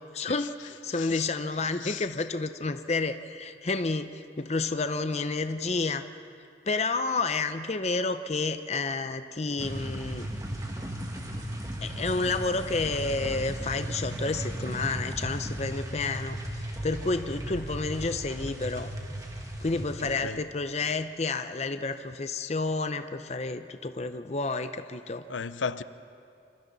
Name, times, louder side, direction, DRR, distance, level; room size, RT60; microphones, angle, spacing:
voice 1, 0.1-6.1 6.7-10.3 11.8-18.9 19.6-25.2, left 3 dB, 35° left, 9 dB, 0.6 m, -30 dB
sound 1, 9.6-20.2, equal, 20° right, 1.9 m, -36 dB
voice 2, 20.0-20.4 25.3-25.8, left 5 dB, 85° left, 14 dB, 0.6 m, -34 dB
27.0 x 27.0 x 4.1 m, 2.4 s
head